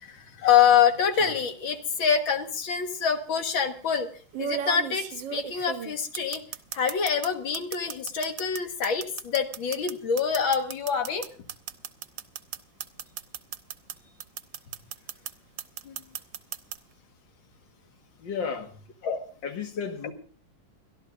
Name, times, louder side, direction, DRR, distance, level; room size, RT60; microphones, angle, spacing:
voice 1, 0.0-4.1 4.4-6.4 6.7-11.3 15.9-16.0 19.0-19.2, left 7 dB, 90° left, 2.4 m, -25 dB
sound 1, 1.1-1.5 2.7-2.8 4.3-7.3 7.5-13.9 14.2-15.3 15.6-16.8, right 9 dB, 70° right, 1.5 m, -35 dB
voice 2, 18.2-18.7 19.4-20.1, left 6 dB, 70° left, 2.4 m, -33 dB
29.5 x 12.5 x 2.6 m
omnidirectional pair, 2.1 m